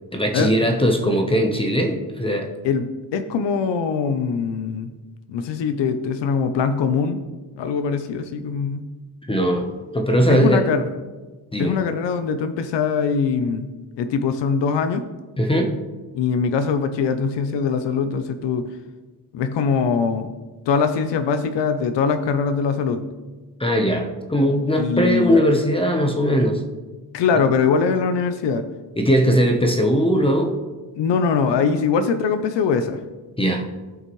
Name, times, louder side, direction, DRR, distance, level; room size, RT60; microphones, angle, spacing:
voice 1, 0.1-2.5 9.2-9.7 9.9-10.6 11.5-11.8 15.4-15.7 23.6-26.6 29.0-30.5 33.4-33.7, equal, 15° left, 3 dB, 0.8 m, -19 dB
voice 2, 2.6-4.9 5.3-7.2 7.6-8.8 10.3-10.8 11.6-13.7 14.0-15.1 16.1-18.7 19.3-20.3 20.7-23.0 24.8-25.4 27.1-28.7 30.9-33.0, left 5 dB, 80° left, 9 dB, 0.7 m, -22 dB
16.0 x 5.5 x 3.1 m, 1.3 s
cardioid pair, 125°, 42 cm